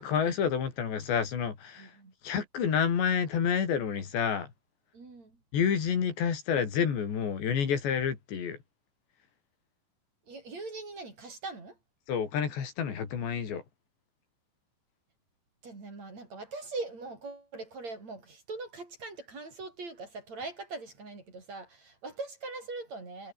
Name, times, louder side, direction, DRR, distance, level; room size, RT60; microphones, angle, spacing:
voice 1, 0.0-1.9 2.2-4.5 5.5-8.6 12.1-13.6, left 7 dB, 75° left, 6.1 m, -29 dB
voice 2, 1.8-2.1 4.9-5.4 10.3-11.8 15.6-23.3, right 3 dB, 40° right, 6.8 m, -41 dB
omnidirectional pair, 5.1 m